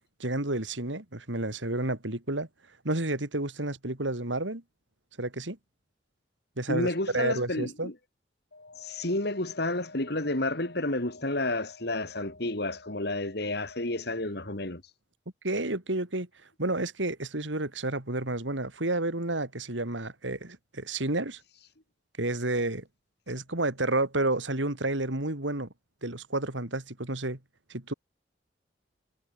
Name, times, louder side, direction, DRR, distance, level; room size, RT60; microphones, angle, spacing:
voice 1, 0.2-2.5 2.8-4.6 5.2-5.6 6.6-6.9 7.1-7.9 15.4-16.3 16.6-21.4 22.2-22.9 23.3-25.7 26.0-27.4 27.7-27.9, right 2 dB, 80° right, 3.5 m, -30 dB
voice 2, 6.7-7.9 8.5-14.8, left 2 dB, 60° left, 3.1 m, -31 dB
head